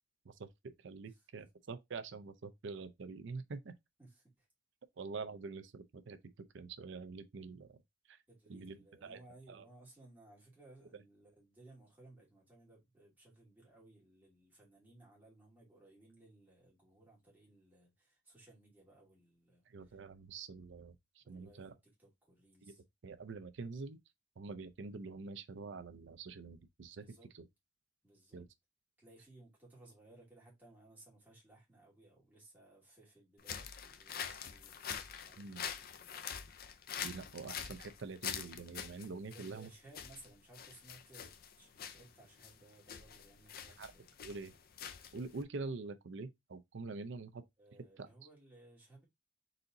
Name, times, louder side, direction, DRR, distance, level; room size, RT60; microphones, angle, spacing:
voice 1, 0.2-3.7 5.0-6.2 6.5-7.8 8.1-8.2 8.5-9.2 9.5-9.7 19.7-21.7 22.6-22.7 23.0-24.0 24.4-27.1 28.3-28.4 35.4-35.7 37.0-39.7 43.8-43.9 44.2-44.5 45.1-47.4 48.0-48.1, right 4 dB, 70° right, 0.5 m, -46 dB
voice 2, 4.0-4.5 8.3-20.0 21.2-22.8 27.0-27.3 28.0-28.5 29.0-36.2 39.3-44.2 47.6-49.0, right 2 dB, 10° right, 2.5 m, -61 dB
sound 1, 33.4-45.4, left 8 dB, 50° left, 0.5 m, -45 dB
4.1 x 3.9 x 2.6 m
head